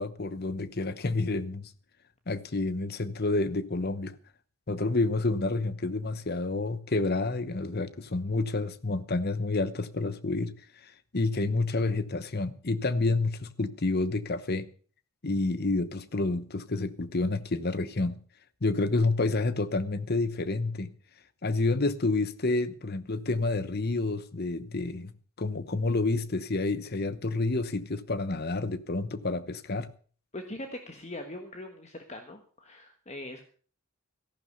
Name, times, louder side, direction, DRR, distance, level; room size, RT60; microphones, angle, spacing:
voice 1, 0.0-1.7 2.3-4.1 4.7-10.5 10.8-14.7 15.2-18.2 18.6-20.9 21.4-29.9, left 3 dB, 50° left, 1.0 m, -29 dB
voice 2, 30.3-33.4, left 1 dB, 30° left, 1.5 m, -41 dB
14.5 x 11.5 x 6.6 m
head